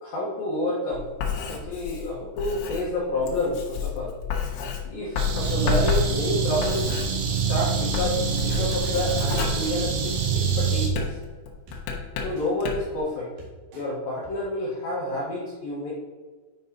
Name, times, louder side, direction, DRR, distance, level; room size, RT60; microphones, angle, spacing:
voice 1, 0.0-1.1 1.5-4.1 4.8-6.9 7.5-11.1 12.2-13.3 13.7-15.9, left 1 dB, 70° left, -6 dB, 2.3 m, -29 dB
Writing, 0.9-7.6 7.8-10.4 10.9-13.0, left 7 dB, 85° left, 3.7 m, -31 dB
sound 1, 5.2-10.9, right 5 dB, 80° right, 2.4 m, -26 dB
sound 2, 9.6-9.8 10.7-11.1 11.7-11.8 12.4-12.5 13.0-13.1 13.4-13.8 14.2-14.3, right 2 dB, 60° right, 3.0 m, -45 dB
9.9 x 5.5 x 2.8 m, 1.4 s
omnidirectional pair, 5.8 m